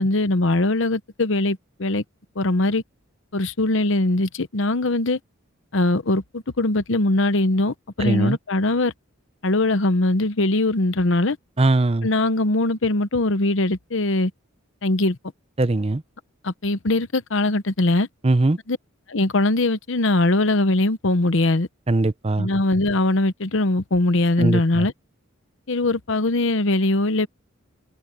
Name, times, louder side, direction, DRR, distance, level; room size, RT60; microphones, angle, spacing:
voice 1, 0.0-2.0 2.4-2.8 3.3-5.2 5.7-8.9 9.4-11.4 12.0-14.3 14.8-15.2 16.4-18.1 18.7-18.8 19.1-21.7 22.4-24.9 25.7-27.3, left 2 dB, 65° left, 0.9 m, -21 dB
voice 2, 8.0-8.4 11.6-12.1 15.6-16.0 18.2-18.6 21.9-22.5 24.4-24.9, right 2 dB, 30° right, 0.6 m, -20 dB
open air
head